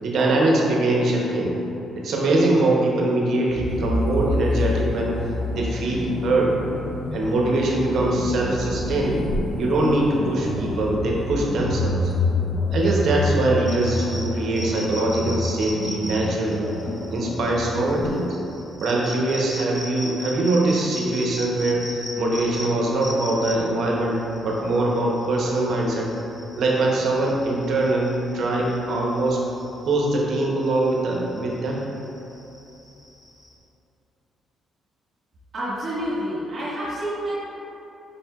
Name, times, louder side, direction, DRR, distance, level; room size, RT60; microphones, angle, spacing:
voice 1, 0.0-1.5 1.9-5.1 5.5-6.5 7.1-9.2 9.6-12.1 12.7-16.7 17.1-18.3 18.8-26.1 26.6-29.4 29.8-31.8, right 2 dB, 65° right, -2 dB, 0.7 m, -22 dB
sound 1, 3.5-18.3, left 2 dB, 50° left, 0.6 m, -28 dB
sound 2, 13.7-33.5, left 1 dB, 15° left, 0.9 m, -38 dB
voice 2, 35.5-37.4, equal, 50° right, -10 dB, 1.4 m, -28 dB
5.1 x 4.2 x 2.3 m, 2.9 s
cardioid pair, 90°, 0 cm